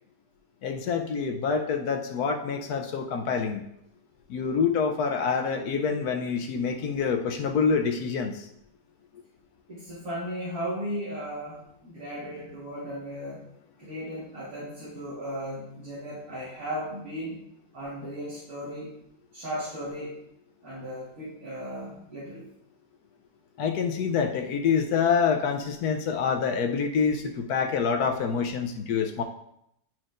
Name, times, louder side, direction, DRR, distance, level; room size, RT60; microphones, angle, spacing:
voice 1, 0.6-3.6 4.3-8.5 23.6-29.2, left 6 dB, 70° left, 5 dB, 1.1 m, -26 dB
voice 2, 9.7-13.4 13.8-17.4 17.7-19.0 19.3-20.2 20.6-22.5, equal, 55° right, -8 dB, 2.2 m, -36 dB
10.5 x 4.4 x 2.5 m, 0.77 s
omnidirectional pair, 1.8 m